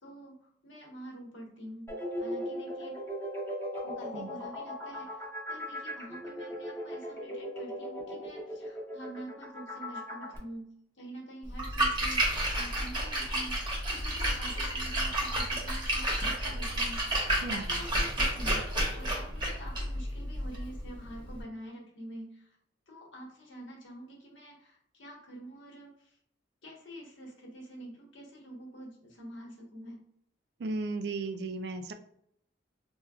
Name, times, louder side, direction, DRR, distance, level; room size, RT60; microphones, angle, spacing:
voice 1, 0.0-3.0 3.8-22.5 22.9-26.2 26.6-30.0, right 1 dB, 80° left, -2 dB, 1.1 m, -47 dB
sound 1, 1.9-10.4, equal, 10° left, 0.7 m, -38 dB
Splash splatter, 11.5-21.4, right 1 dB, 25° right, 0.7 m, -31 dB
voice 2, 30.6-31.9, right 3 dB, 55° right, 8 dB, 0.3 m, -35 dB
4.4 x 2.2 x 2.3 m, 0.73 s
head